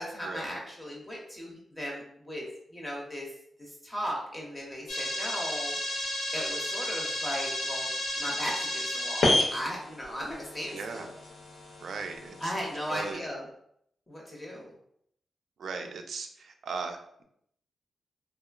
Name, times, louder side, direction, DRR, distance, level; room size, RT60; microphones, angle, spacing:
voice 1, 0.0-2.5 2.7-3.3 3.6-7.9 8.2-11.1 12.4-13.4 14.1-14.7, equal, 15° left, -2 dB, 0.5 m, -37 dB
sound 1, 4.9-13.1, left 1 dB, 85° left, 0.6 m, -32 dB
voice 2, 10.7-11.1 11.8-12.5 12.9-13.3 15.6-17.2, right 4 dB, 70° right, 5 dB, 0.3 m, -37 dB
2.8 x 2.2 x 2.3 m, 0.71 s
wide cardioid pair, 145°, 0 cm